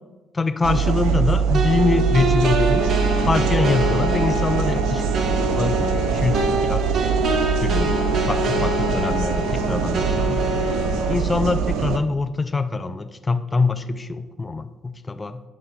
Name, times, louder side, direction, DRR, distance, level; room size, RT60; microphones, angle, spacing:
voice 1, 0.3-5.0 5.3-6.9 7.6-7.9 8.2-10.4 11.1-15.4, left 3 dB, 25° left, 11 dB, 0.4 m, -24 dB
sound 1, 0.6-12.0, right 6 dB, 65° right, 0.3 m, -23 dB
sound 2, 1.5-11.1, right 1 dB, 50° right, 0.8 m, -25 dB
9.6 x 3.3 x 3.7 m, 1.2 s
figure-of-eight pair, 45°, 0 cm